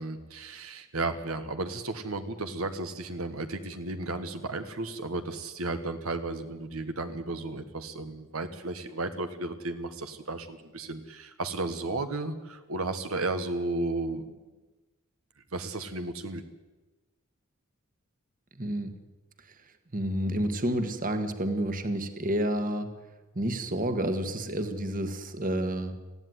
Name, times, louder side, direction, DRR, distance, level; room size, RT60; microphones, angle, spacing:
voice 1, 0.0-14.2 15.5-16.4, right 2 dB, 75° right, 8 dB, 1.3 m, -34 dB
voice 2, 18.6-18.9 19.9-22.9 23.3-25.9, right 1 dB, 40° right, 8 dB, 1.6 m, -29 dB
19.5 x 15.0 x 9.5 m, 1.2 s
head